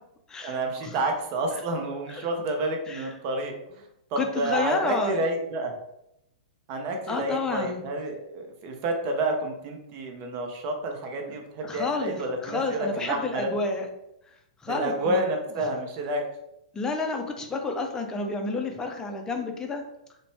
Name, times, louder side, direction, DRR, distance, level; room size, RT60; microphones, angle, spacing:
voice 1, 0.4-3.8 4.1-5.7 6.7-13.5 14.7-16.2, right 2 dB, 45° right, 3 dB, 0.6 m, -29 dB
voice 2, 4.2-5.2 7.1-7.8 11.3-11.4 11.6-13.9 14.6-15.2 16.7-19.8, left 3 dB, 15° left, 3 dB, 0.4 m, -30 dB
2.6 x 2.1 x 3.1 m, 0.82 s
hypercardioid pair, 115°, 4 cm